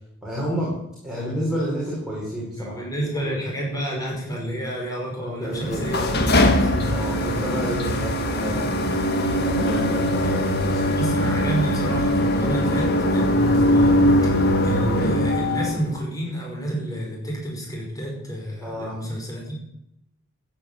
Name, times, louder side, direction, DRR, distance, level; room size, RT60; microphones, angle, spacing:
voice 1, 0.2-0.7 1.0-2.8 3.2-3.3 5.2-5.9 6.8-8.6 9.4-10.8 18.6-19.0, equal, 5° right, -6 dB, 4.6 m, -30 dB
voice 2, 2.6-7.3 10.2-10.3 10.9-19.6, equal, 15° left, -2 dB, 5.3 m, -30 dB
sound 1, 5.6-15.9, left 1 dB, 50° left, 1.7 m, -21 dB
14.0 x 8.8 x 8.6 m, 0.81 s
head